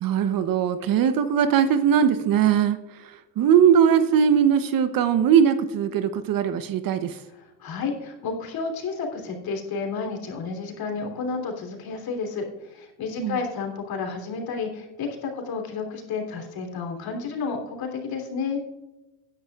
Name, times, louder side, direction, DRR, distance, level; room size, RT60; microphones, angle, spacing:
voice 1, 0.0-7.2 13.2-13.4, right 8 dB, 45° right, 11 dB, 0.8 m, -20 dB
voice 2, 7.4-18.6, left 4 dB, 45° left, 2 dB, 3.2 m, -31 dB
16.0 x 10.5 x 2.4 m, 0.99 s
hypercardioid pair, 90°, 49 cm